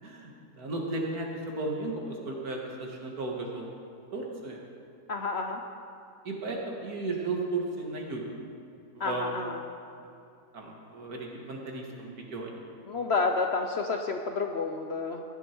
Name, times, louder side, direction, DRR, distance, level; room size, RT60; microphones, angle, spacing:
voice 1, 0.0-3.6 4.1-4.6 6.2-8.3 8.9-9.4 10.0-10.1 10.5-12.5, right 2 dB, 70° right, 0 dB, 2.3 m, -35 dB
voice 2, 5.1-5.6 9.0-9.6 12.9-15.2, left 4 dB, 55° left, 4 dB, 0.8 m, -30 dB
15.5 x 11.0 x 4.5 m, 2.6 s
omnidirectional pair, 1.6 m